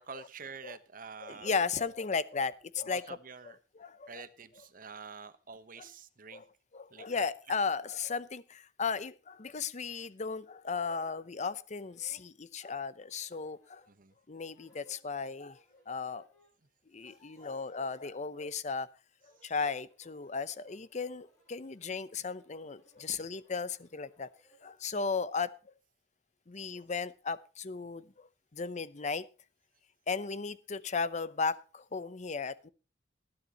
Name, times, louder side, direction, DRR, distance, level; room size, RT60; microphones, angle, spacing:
voice 1, 0.0-1.6 2.8-6.4 6.9-7.6 13.9-14.1 19.4-19.5, right 5 dB, 50° right, 12 dB, 1.1 m, -48 dB
voice 2, 1.2-3.0 3.8-4.2 6.3-6.4 6.7-13.8 14.3-15.6 15.9-16.2 16.9-18.9 19.4-24.3 24.6-25.5 26.5-29.2 30.1-32.7, left 5 dB, 40° left, 16 dB, 0.7 m, -35 dB
sound 1, 10.0-10.2 10.6-10.7 11.4-11.5 11.7-12.3 13.2-13.9 14.4-16.5 16.8-18.1 19.1-24.8, right 1 dB, 20° left, 7.6 m, -67 dB
19.5 x 11.0 x 3.0 m, 0.32 s
head